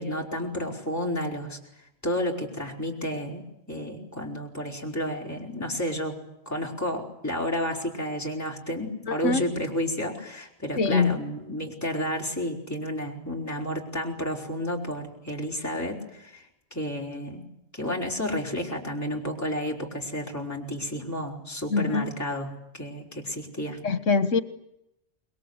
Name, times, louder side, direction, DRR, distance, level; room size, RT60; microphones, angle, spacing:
voice 1, 0.0-1.6 2.0-6.2 6.4-16.5 16.7-17.4 17.7-23.8, equal, 10° left, -1 dB, 4.7 m, -31 dB
voice 2, 9.1-9.4 10.8-11.2 21.7-22.1 23.8-24.4, left 4 dB, 75° left, 11 dB, 1.8 m, -23 dB
26.0 x 23.0 x 8.1 m, 0.82 s
omnidirectional pair, 1.3 m